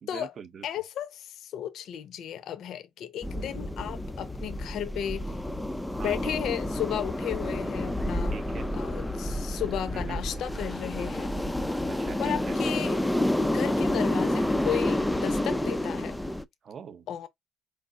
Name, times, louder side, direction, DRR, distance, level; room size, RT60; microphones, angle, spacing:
voice 1, 0.0-0.6 6.0-6.4 8.3-8.7 9.9-10.3 11.9-12.6 16.6-17.1, right 7 dB, 40° right, 0.6 m, -43 dB
voice 2, 0.6-5.2 6.0-8.4 8.7-11.3 12.2-13.0 13.4-16.2 17.1-17.3, left 10 dB, 60° left, 0.6 m, -34 dB
sound 1, 3.2-16.4, left 1 dB, 5° left, 0.3 m, -29 dB
4.9 x 3.4 x 2.5 m
cardioid pair, 155°, 0 cm